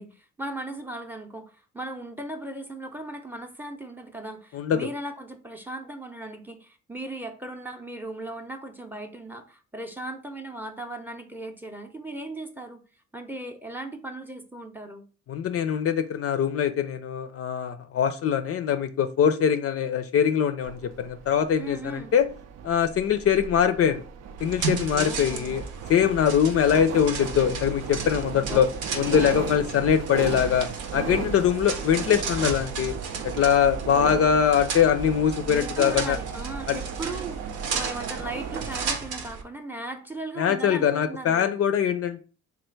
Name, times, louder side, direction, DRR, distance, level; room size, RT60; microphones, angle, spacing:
voice 1, 0.0-12.8 13.1-15.0 21.6-22.1 24.9-25.6 28.5-28.7 29.0-29.5 35.5-41.5, right 2 dB, 5° right, 0.6 m, -37 dB
voice 2, 4.5-4.9 15.3-22.3 22.6-24.0 24.4-25.6 25.9-28.7 28.9-30.7 30.9-32.9 33.4-36.2 36.7-36.8 40.4-42.2, left 8 dB, 50° left, 0.4 m, -23 dB
sound 1, 20.6-38.9, right 7 dB, 60° right, 0.5 m, -36 dB
sound 2, 24.4-39.4, right 5 dB, 80° right, 0.8 m, -34 dB
3.3 x 2.4 x 4.5 m
cardioid pair, 90°, 30 cm